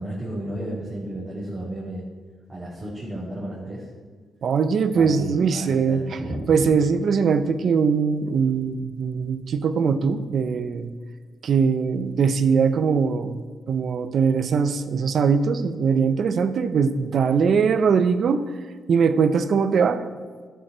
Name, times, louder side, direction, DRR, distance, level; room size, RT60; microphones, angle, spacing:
voice 1, 0.0-2.0 2.5-3.9 4.9-6.7, right 1 dB, 25° right, -10 dB, 3.4 m, -33 dB
voice 2, 4.4-6.2 6.5-10.9 11.4-18.4 18.9-20.0, right 6 dB, 60° right, 11 dB, 0.6 m, -21 dB
13.0 x 7.0 x 4.4 m, 1.5 s
cardioid pair, 90°, 0 cm